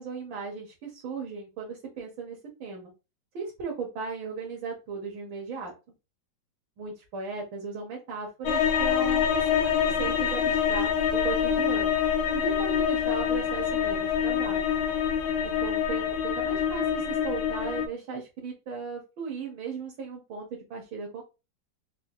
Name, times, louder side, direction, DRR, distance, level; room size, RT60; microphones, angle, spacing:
voice 1, 0.0-2.9 3.3-5.7 6.8-12.0 12.3-14.6 15.6-21.2, right 5 dB, 90° right, -1 dB, 1.6 m, -36 dB
sound 1, 8.5-17.9, left 8 dB, 70° left, 1.1 m, -26 dB
4.2 x 2.9 x 2.3 m, 0.28 s
omnidirectional pair, 2.1 m